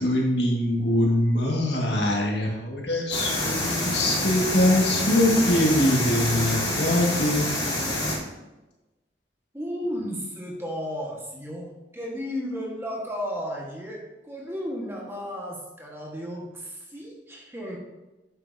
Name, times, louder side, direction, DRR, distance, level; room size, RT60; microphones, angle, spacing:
voice 1, 0.0-7.5, left 1 dB, 75° left, -1 dB, 1.9 m, -23 dB
sound 1, 3.1-8.2, left 1 dB, 25° left, 2.6 m, -27 dB
voice 2, 9.5-11.7 11.9-17.8, equal, 15° right, -2 dB, 1.5 m, -33 dB
9.5 x 7.5 x 2.8 m, 1.0 s
head